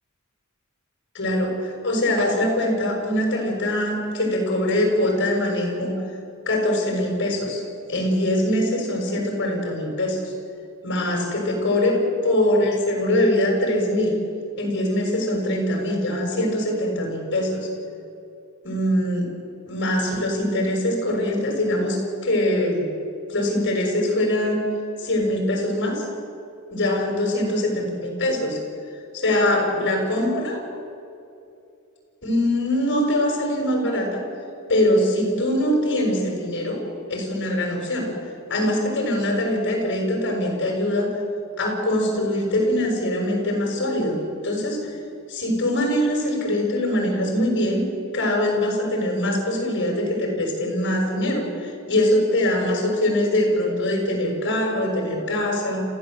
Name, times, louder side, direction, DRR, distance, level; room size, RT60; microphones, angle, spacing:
voice 1, 1.1-5.9 6.5-7.6 7.9-10.2 10.8-12.0 12.2-14.2 14.6-17.7 18.6-19.3 19.7-22.0 22.2-22.9 23.3-24.6 25.0-26.1 26.7-28.6 29.1-30.6 32.2-34.2 34.7-36.8 37.1-38.1 38.5-41.1 41.6-44.8 45.3-47.8 48.1-55.9, left 1 dB, 55° left, 1 dB, 6.2 m, -23 dB
28.0 x 15.5 x 7.7 m, 2.7 s
head